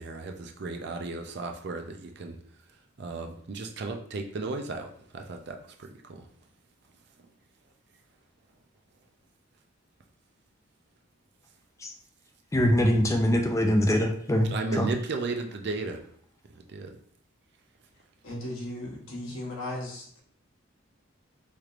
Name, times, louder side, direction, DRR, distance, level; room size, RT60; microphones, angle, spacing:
voice 1, 0.0-2.4 3.0-6.2 14.5-16.0 16.7-16.9, right 3 dB, 55° right, 4 dB, 0.5 m, -34 dB
voice 2, 12.5-14.9, equal, 15° left, 3 dB, 0.4 m, -23 dB
voice 3, 18.2-20.2, left 1 dB, 85° left, -3 dB, 1.0 m, -36 dB
3.2 x 3.0 x 2.5 m, 0.62 s
head